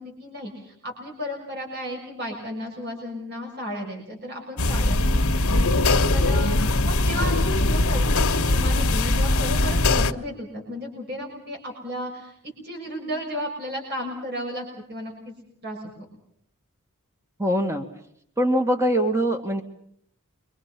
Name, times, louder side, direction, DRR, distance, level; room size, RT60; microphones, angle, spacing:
voice 1, 0.0-5.4 6.1-15.3 15.6-15.8, equal, 50° right, 1 dB, 6.4 m, -34 dB
sound 1, 4.6-10.1, left 2 dB, 70° left, 1.2 m, -21 dB
voice 2, 17.4-17.9 18.4-19.6, equal, 15° right, 5 dB, 1.6 m, -22 dB
28.0 x 24.0 x 5.8 m, 0.71 s
head